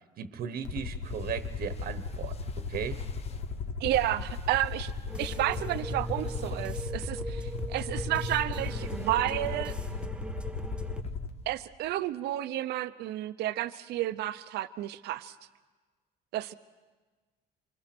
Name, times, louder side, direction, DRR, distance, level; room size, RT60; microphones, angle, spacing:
voice 1, 0.2-2.4 2.7-3.0, right 8 dB, 60° right, 10 dB, 1.2 m, -36 dB
Aircraft, 0.6-11.3, left 4 dB, 75° left, 1.8 m, -36 dB
sound 1, 0.8-11.5, left 6 dB, 40° left, 1.1 m, -52 dB
voice 2, 3.8-4.9 5.2-9.7 11.5-15.3 16.3-16.5, right 14 dB, 80° right, 12 dB, 0.8 m, -31 dB
sound 2, 5.1-11.0, right 1 dB, 5° right, 0.7 m, -39 dB
26.0 x 25.0 x 6.1 m, 1.3 s
cardioid pair, 110°, 17 cm